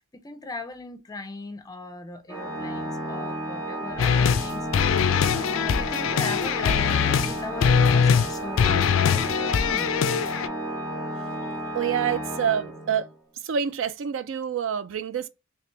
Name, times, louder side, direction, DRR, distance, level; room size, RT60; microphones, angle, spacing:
voice 1, 0.1-4.7 5.3-9.9, left 3 dB, 20° left, 0.4 m, -38 dB
Organ, 2.3-13.1, right 1 dB, 15° right, 1.0 m, -32 dB
sound 1, 3.9-10.0, right 2 dB, 45° right, 0.9 m, -48 dB
sound 2, 4.0-4.5 4.7-7.3 7.6-8.3 8.6-10.5, left 7 dB, 80° left, 0.3 m, -22 dB
voice 2, 11.7-13.1 13.4-15.3, right 8 dB, 75° right, 0.3 m, -27 dB
3.1 x 2.9 x 3.2 m
head